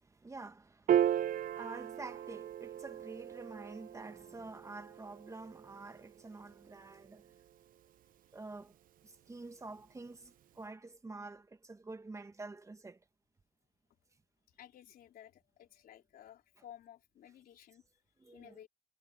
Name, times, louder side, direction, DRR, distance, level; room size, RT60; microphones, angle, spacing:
voice 1, 0.0-7.2 8.3-8.7 9.0-13.0 18.2-18.6, right 3 dB, 20° right, 1.5 m, -48 dB
Piano, 0.9-7.5, right 10 dB, 55° right, 0.8 m, -36 dB
voice 2, 14.5-17.8 18.2-18.7, left 10 dB, 60° left, 3.7 m, -55 dB
cardioid pair, 110°, 17 cm